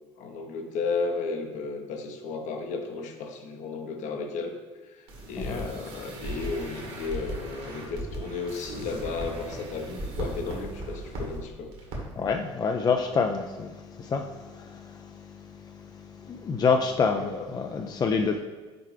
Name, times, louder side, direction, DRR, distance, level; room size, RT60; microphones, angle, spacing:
voice 1, 0.2-4.5 4.8-11.7 17.1-17.5, left 4 dB, 55° left, 4 dB, 0.9 m, -34 dB
sound 1, 5.1-11.4 11.7-12.0 12.2-12.4, right 1 dB, 60° right, 1.9 m, -37 dB
voice 2, 12.2-18.4, left 5 dB, 25° left, 4 dB, 0.4 m, -28 dB
7.6 x 4.6 x 3.3 m, 1.3 s
figure-of-eight pair, 55°, 15 cm